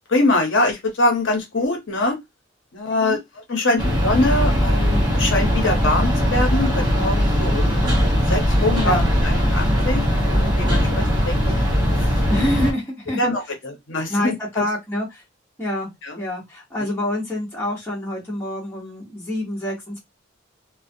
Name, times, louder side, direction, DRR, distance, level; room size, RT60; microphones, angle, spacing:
voice 1, 0.1-2.2 2.7-3.2 3.5-7.8 8.3-9.0 9.2-11.6 12.0-12.1 13.2-14.6 16.0-16.2, left 2 dB, 70° left, 0.8 m, -23 dB
sound 1, 3.8-12.7, equal, 20° right, 0.9 m, -19 dB
voice 2, 12.3-13.2 14.1-15.2 15.6-15.9 16.2-20.0, left 1 dB, 10° left, 1.2 m, -26 dB
2.5 x 2.2 x 2.6 m
head